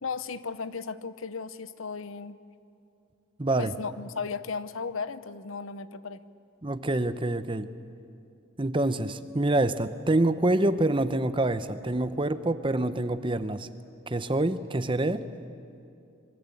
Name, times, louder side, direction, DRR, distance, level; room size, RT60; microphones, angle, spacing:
voice 1, 0.0-2.4 3.6-6.2, left 5 dB, 75° left, 14 dB, 0.8 m, -35 dB
voice 2, 3.4-3.7 6.6-7.7 8.6-13.7 14.1-15.2, right 2 dB, 25° right, 12 dB, 0.8 m, -26 dB
25.5 x 22.5 x 8.5 m, 2.6 s
head